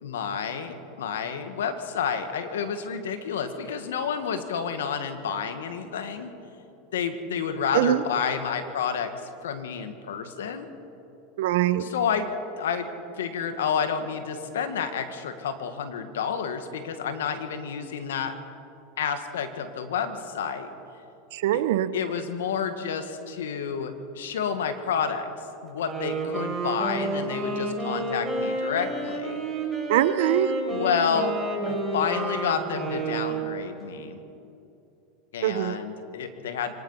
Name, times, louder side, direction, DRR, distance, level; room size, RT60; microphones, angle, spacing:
voice 1, 0.0-6.3 6.9-9.1 9.4-10.7 11.8-12.3 12.6-12.9 13.2-18.3 19.0-20.7 21.5-21.6 21.9-25.3 25.6-29.4 30.7-31.4 31.7-34.2 35.3-36.7, left 7 dB, 90° left, 8 dB, 1.7 m, -30 dB
voice 2, 11.4-11.9 21.3-21.9 29.9-30.5 35.4-35.8, right 13 dB, 75° right, 13 dB, 0.9 m, -22 dB
Wind instrument woodwind instrument, 25.7-33.7, right 2 dB, 10° right, 6.1 m, -30 dB
24.0 x 19.0 x 5.7 m, 2.7 s
supercardioid pair, 110°, 0 cm